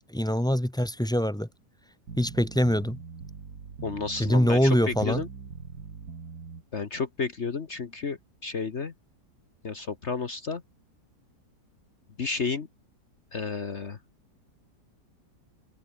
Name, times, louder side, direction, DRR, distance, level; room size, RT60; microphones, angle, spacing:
voice 1, 0.1-1.5 2.2-3.0 4.2-5.2, equal, 5° left, 1.0 m, -24 dB
sound 1, 2.1-6.6, right 5 dB, 65° right, 2.7 m, -42 dB
voice 2, 3.8-5.3 6.7-8.9 9.6-10.6 12.2-12.7 13.3-14.0, left 4 dB, 45° left, 1.5 m, -32 dB
omnidirectional pair, 1.8 m